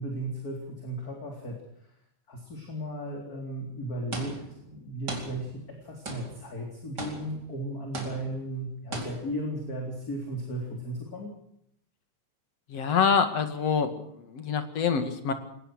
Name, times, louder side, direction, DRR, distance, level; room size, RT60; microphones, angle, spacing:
voice 1, 0.0-1.6 2.3-11.3, right 1 dB, 30° left, 1 dB, 4.3 m, -35 dB
sound 1, 4.1-4.7 5.1-5.8 6.1-6.6 7.0-7.6 7.9-8.5 8.9-9.5, right 2 dB, 35° right, 4.8 m, -38 dB
voice 2, 12.7-15.3, left 6 dB, 60° left, 9 dB, 3.1 m, -26 dB
22.0 x 19.5 x 6.5 m, 0.73 s
omnidirectional pair, 3.4 m